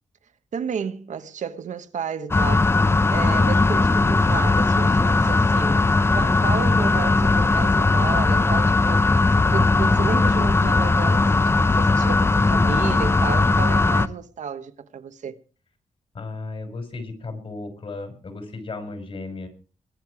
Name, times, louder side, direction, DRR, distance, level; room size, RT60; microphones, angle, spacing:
voice 1, 0.5-2.7 3.1-5.9 6.1-9.0 9.3-15.4, right 7 dB, 80° right, 1.1 m, -32 dB
sound 1, 2.3-14.1, left 3 dB, 20° left, 0.7 m, -19 dB
voice 2, 16.1-19.5, left 3 dB, 50° left, 5.2 m, -35 dB
22.0 x 9.4 x 4.8 m
wide cardioid pair, 120°, 12 cm